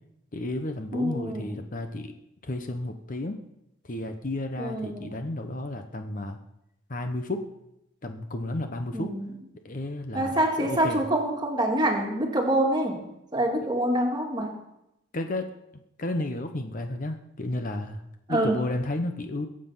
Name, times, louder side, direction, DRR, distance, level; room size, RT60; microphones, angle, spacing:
voice 1, 0.3-2.1 2.4-3.4 3.8-6.4 6.9-7.5 8.0-9.1 9.6-11.0 15.1-15.5 16.0-19.5, left 1 dB, 40° left, 6 dB, 0.9 m, -32 dB
voice 2, 0.9-1.6 4.6-5.3 8.9-9.3 10.1-13.0 13.3-14.6 18.3-18.6, right 1 dB, 20° right, 2 dB, 2.0 m, -26 dB
22.0 x 7.7 x 5.6 m, 0.87 s
head